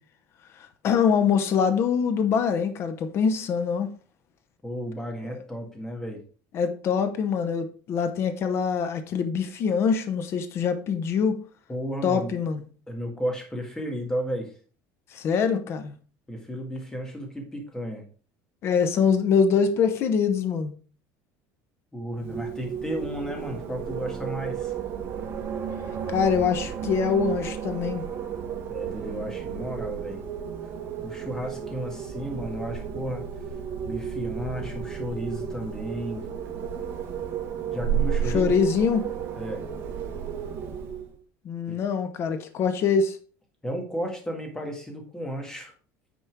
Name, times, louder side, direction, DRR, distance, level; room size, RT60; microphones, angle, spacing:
voice 1, 0.5-3.9 6.5-11.3 12.0-12.6 15.1-16.0 18.6-20.7 26.1-28.0 38.3-39.1 41.4-43.2, left 6 dB, 40° left, 1.0 m, -24 dB
voice 2, 4.6-6.2 11.7-12.3 12.9-14.5 16.3-18.0 21.9-24.7 28.7-30.2 31.0-33.2 33.8-36.3 37.7-38.5 39.4-39.6 41.7-41.8 43.6-45.7, equal, 10° left, 1.9 m, -33 dB
Wind, 22.1-41.1, right 7 dB, 35° right, 1.8 m, -33 dB
9.3 x 4.3 x 4.7 m
cardioid pair, 165°, 7 cm